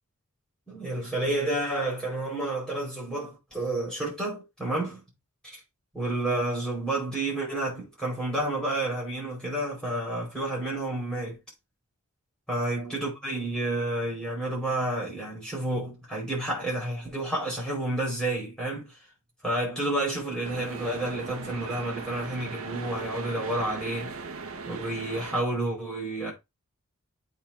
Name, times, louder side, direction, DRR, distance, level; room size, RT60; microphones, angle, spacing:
voice 1, 0.7-5.0 5.4-5.6 5.9-11.4 12.5-18.9 19.4-24.2 24.7-26.3, right 1 dB, 5° left, 4.7 m, -30 dB
sound 1, 20.4-25.4, right 4 dB, 70° right, 0.9 m, -38 dB
8.4 x 4.2 x 3.7 m
head